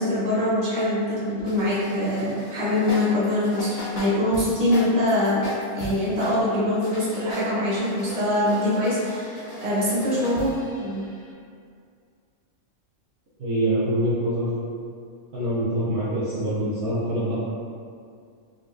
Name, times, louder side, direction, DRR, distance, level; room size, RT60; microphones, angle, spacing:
voice 1, 0.0-5.4 5.7-11.1, left 1 dB, 35° right, -9 dB, 0.9 m, -23 dB
sound 1, 1.5-6.4 6.7-11.3, equal, 50° left, 0.9 m, -37 dB
voice 2, 13.4-14.5 15.3-17.3, right 1 dB, 55° right, -11 dB, 0.6 m, -25 dB
4.1 x 2.3 x 2.4 m, 2.2 s
omnidirectional pair, 1.5 m